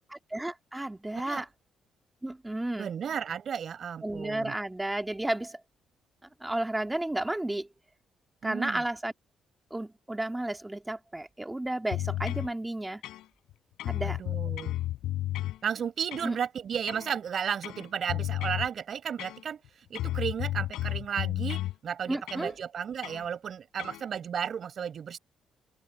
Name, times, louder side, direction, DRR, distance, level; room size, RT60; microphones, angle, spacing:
voice 1, 0.3-1.5 2.2-2.9 4.0-5.6 6.4-7.7 8.4-9.1 9.7-13.0 13.8-14.2 16.2-16.4 22.1-22.5, right 1 dB, 10° right, 2.0 m, -32 dB
voice 2, 2.8-4.5 8.4-8.8 14.0-14.8 15.6-25.2, right 8 dB, 55° right, 4.7 m, -34 dB
sound 1, 11.9-12.5 13.0-13.5 13.8-15.6 16.1-16.4 16.9-17.1 17.6-18.7 19.2-19.7 20.0-21.8 22.3-22.5 23.0-23.3 23.8-24.0, left 15 dB, 90° left, 7.8 m, -33 dB
open air
cardioid pair, 90°, 0 cm